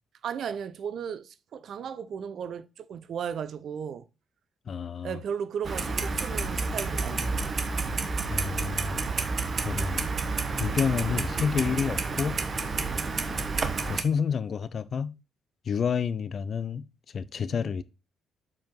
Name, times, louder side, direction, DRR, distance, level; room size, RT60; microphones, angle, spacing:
voice 1, 0.2-4.1 5.0-7.4, right 7 dB, 60° right, 0.5 m, -35 dB
voice 2, 4.7-5.2 8.3-9.1 9.6-10.1 10.6-12.4 13.9-15.1 15.6-17.8, left 6 dB, 50° left, 0.5 m, -29 dB
Clock, 5.6-14.0, right 4 dB, 45° right, 1.0 m, -30 dB
7.5 x 4.6 x 3.7 m
hypercardioid pair, 45°, 0 cm